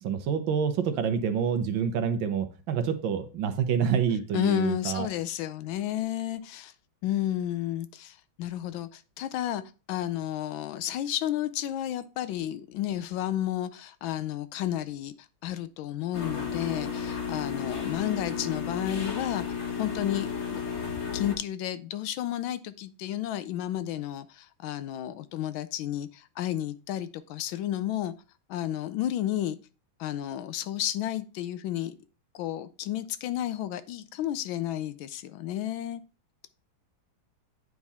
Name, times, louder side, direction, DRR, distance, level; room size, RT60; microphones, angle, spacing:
voice 1, 0.0-5.1, right 7 dB, 70° right, 1.5 m, -27 dB
voice 2, 4.3-6.7 7.0-9.6 9.9-15.1 15.4-19.5 19.8-20.6 21.1-28.1 28.5-29.6 30.0-31.9 32.3-36.0, left 12 dB, 75° left, 1.3 m, -32 dB
sound 1, 16.1-21.3, left 6 dB, 40° left, 1.1 m, -33 dB
9.5 x 3.6 x 4.1 m
omnidirectional pair, 2.3 m